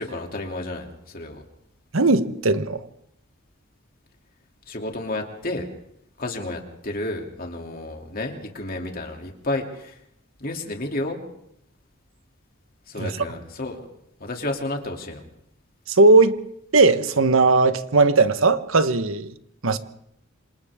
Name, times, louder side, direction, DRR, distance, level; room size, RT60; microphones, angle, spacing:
voice 1, 0.0-1.4 4.7-5.7 6.2-10.0 10.4-11.2 12.9-13.8 14.2-15.2, left 2 dB, 45° left, 2.9 m, -31 dB
voice 2, 1.9-2.8 13.0-13.1 15.9-16.4 16.7-19.3 19.6-19.8, right 3 dB, 80° right, 1.2 m, -18 dB
27.0 x 26.5 x 3.7 m
head